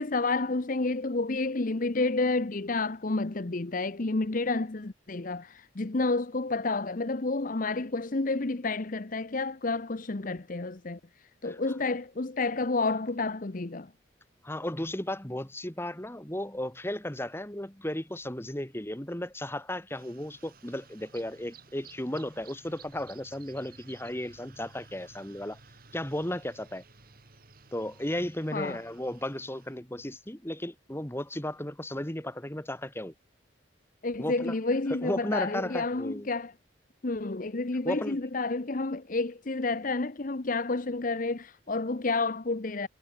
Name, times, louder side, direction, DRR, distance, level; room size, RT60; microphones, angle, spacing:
voice 1, 0.0-11.0 11.4-13.9 28.5-28.8 34.0-36.5 37.0-42.9, left 3 dB, 45° left, 0.9 m, -30 dB
voice 2, 14.4-25.6 25.9-26.8 27.7-33.1 34.2-34.5 34.9-36.3 37.9-38.2, left 1 dB, 10° left, 1.8 m, -35 dB
sound 1, 19.9-29.8, right 4 dB, 50° right, 2.6 m, -55 dB
head